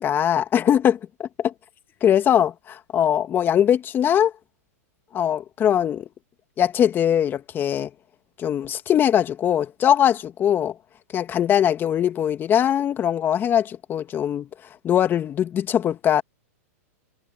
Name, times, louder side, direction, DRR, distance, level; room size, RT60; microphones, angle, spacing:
voice 1, 0.0-1.5 2.0-4.3 5.1-6.1 6.6-7.9 8.4-10.7 11.1-14.5 14.8-16.2, left 9 dB, 25° left, 2.1 m, -21 dB
hypercardioid pair, 125°, 8 cm